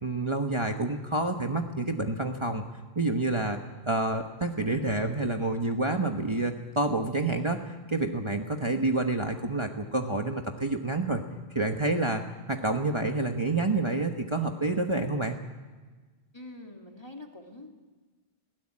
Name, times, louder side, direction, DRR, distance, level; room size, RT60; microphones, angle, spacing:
voice 1, 0.0-2.6 2.9-3.6 3.9-11.2 11.5-12.2 12.5-15.4, right 2 dB, 30° right, 4 dB, 1.2 m, -28 dB
voice 2, 16.3-17.7, left 2 dB, 25° left, 2 dB, 2.4 m, -45 dB
20.5 x 16.5 x 9.8 m, 1.3 s
omnidirectional pair, 1.1 m